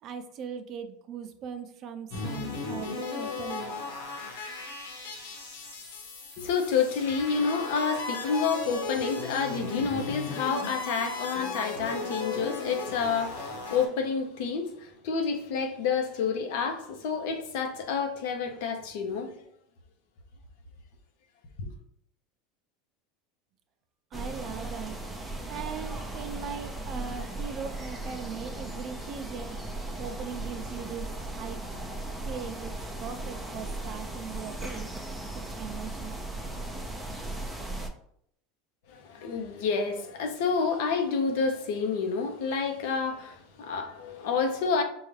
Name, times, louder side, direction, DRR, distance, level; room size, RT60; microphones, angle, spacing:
voice 1, 0.0-3.7 24.1-25.0 25.5-29.5 30.0-31.6 32.2-32.7 33.0-34.9 35.3-36.1, right 7 dB, 45° right, 0.5 m, -39 dB
sound 1, 2.1-13.9, left 3 dB, 90° left, 1.2 m, -36 dB
voice 2, 6.4-19.4 21.6-21.7 38.9-44.8, left 5 dB, 70° left, 0.7 m, -29 dB
sound 2, 24.1-37.9, right 2 dB, ahead, 0.6 m, -37 dB
5.4 x 2.3 x 3.2 m
supercardioid pair, 125°, 0 cm